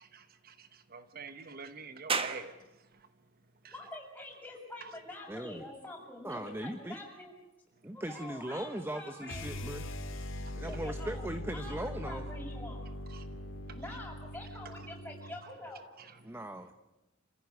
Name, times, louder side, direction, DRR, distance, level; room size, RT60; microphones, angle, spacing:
voice 1, 0.0-2.5 13.1-13.2 16.0-16.1, right 5 dB, 50° right, 1.0 m, -46 dB
sound 1, 2.1-15.2, right 5 dB, 30° right, 1.4 m, -46 dB
voice 2, 3.7-7.3 7.9-9.5 10.6-12.9 13.7-16.0, left 1 dB, 10° left, 7.0 m, -46 dB
voice 3, 5.3-5.7 6.2-7.0 7.8-9.8 10.6-12.3 16.2-16.7, right 1 dB, 10° right, 1.0 m, -39 dB
sound 2, 9.3-15.4, left 1 dB, 90° left, 3.1 m, -41 dB
28.0 x 15.5 x 9.6 m
head